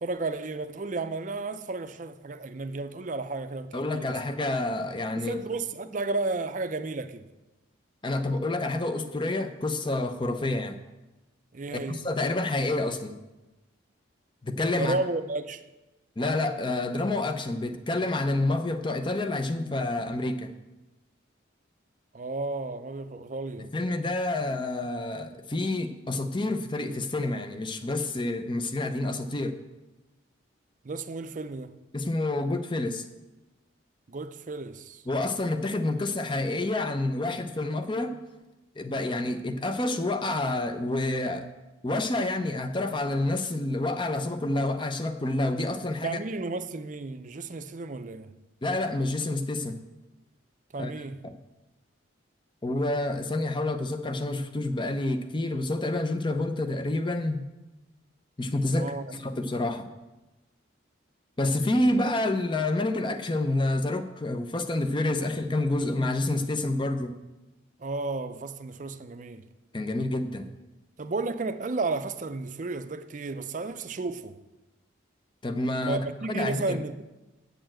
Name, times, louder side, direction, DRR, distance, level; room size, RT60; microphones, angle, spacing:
voice 1, 0.0-4.2 5.2-7.3 11.5-12.0 14.7-15.6 22.1-23.7 30.8-31.8 34.1-35.0 46.0-48.3 50.7-51.2 58.7-59.1 67.8-69.5 71.0-74.4 75.8-77.0, right 3 dB, 40° right, 0.5 m, -33 dB
voice 2, 3.7-5.4 8.0-10.8 11.7-13.2 14.4-15.0 16.2-20.5 23.6-29.6 31.9-33.0 35.1-38.1 38.8-41.5 41.8-46.2 48.6-49.8 50.7-50.9 51.2-51.3 52.6-57.4 58.4-59.9 61.4-67.2 69.7-70.5 75.4-76.0 76.3-76.8, left 2 dB, 25° left, 0.6 m, -28 dB
8.9 x 6.8 x 7.6 m
head